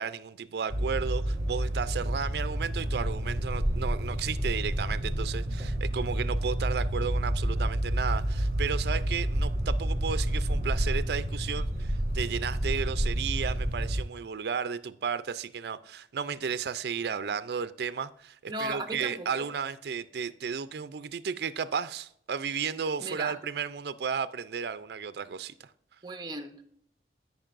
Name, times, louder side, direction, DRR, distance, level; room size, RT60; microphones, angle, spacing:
voice 1, 0.0-25.5, right 6 dB, 65° right, 0.4 m, -33 dB
sound 1, 0.7-14.0, right 1 dB, 40° right, 1.5 m, -29 dB
voice 2, 18.5-19.5 23.0-23.3 26.0-26.7, right 2 dB, 25° right, 0.7 m, -36 dB
13.5 x 5.3 x 2.5 m
head